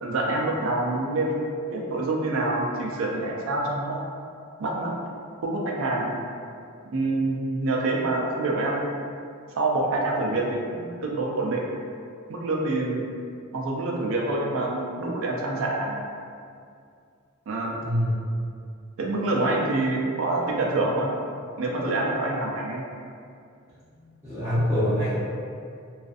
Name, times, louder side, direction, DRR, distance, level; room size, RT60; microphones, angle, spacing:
voice 1, 0.0-4.1 4.6-4.9 5.4-6.1 6.9-9.1 9.5-11.6 12.3-13.0 13.5-16.1 17.5-17.8 19.0-21.1 21.6-22.8, right 2 dB, 65° right, -2 dB, 0.4 m, -26 dB
voice 2, 17.8-18.1 24.2-25.2, equal, 10° right, -16 dB, 0.6 m, -24 dB
2.4 x 2.4 x 2.4 m, 2.3 s
head